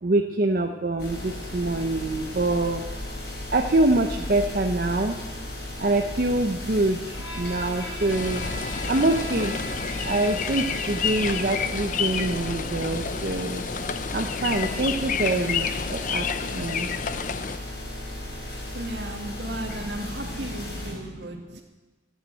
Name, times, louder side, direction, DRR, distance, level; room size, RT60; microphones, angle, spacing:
voice 1, 0.0-2.8 3.5-5.2 5.8-8.4 8.9-9.5 10.0-13.6 14.1-16.3 16.5-16.9 19.5-19.9 20.4-21.6, right 2 dB, 50° right, 3 dB, 0.7 m, -25 dB
sound 1, 1.0-20.9, left 1 dB, 60° left, 5.3 m, -36 dB
Bowed string instrument, 7.1-11.8, left 1 dB, 85° left, 4.5 m, -39 dB
sound 2, 8.1-17.6, left 6 dB, 45° left, 0.6 m, -30 dB
voice 2, 18.7-21.6, right 1 dB, 75° right, 2 dB, 2.1 m, -35 dB
14.0 x 9.2 x 7.8 m, 1.3 s
head